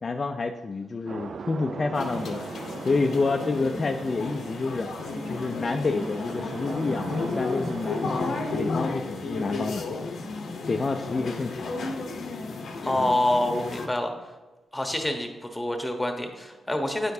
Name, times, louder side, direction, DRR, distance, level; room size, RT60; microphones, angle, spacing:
voice 1, 0.0-2.4 2.8-4.9 5.3-9.9 10.7-11.7 13.0-13.1, left 3 dB, 45° left, 4 dB, 0.4 m, -28 dB
sound 1, 1.1-8.5, right 5 dB, 60° right, 0.3 m, -40 dB
sound 2, 1.9-13.9, left 3 dB, 70° left, 0.7 m, -33 dB
voice 2, 12.8-14.1 14.7-17.1, left 1 dB, 15° left, 5 dB, 1.0 m, -27 dB
9.4 x 4.5 x 2.7 m, 1.2 s
supercardioid pair, 55°, 0 cm